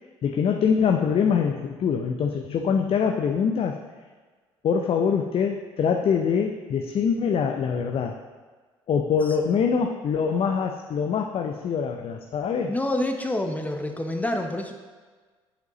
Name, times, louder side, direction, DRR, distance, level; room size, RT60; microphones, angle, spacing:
voice 1, 0.2-3.8 4.6-8.2 8.9-12.7, left 6 dB, 45° left, 3 dB, 0.5 m, -24 dB
voice 2, 12.7-14.7, left 1 dB, 10° left, 4 dB, 0.9 m, -27 dB
8.0 x 5.1 x 3.1 m, 1.4 s
hypercardioid pair, 60°, 13 cm